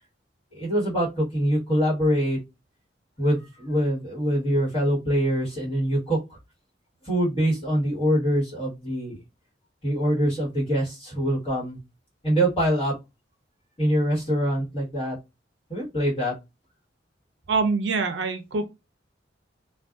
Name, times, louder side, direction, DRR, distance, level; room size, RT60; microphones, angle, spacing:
voice 1, 0.5-2.4 3.2-6.4 7.0-9.2 9.8-11.8 12.2-13.0 13.8-15.2 15.7-16.3, equal, 30° left, 1.3 m, -24 dB
voice 2, 17.5-18.6, right 4 dB, 65° right, 0.5 m, -24 dB
2.5 x 2.2 x 2.3 m
head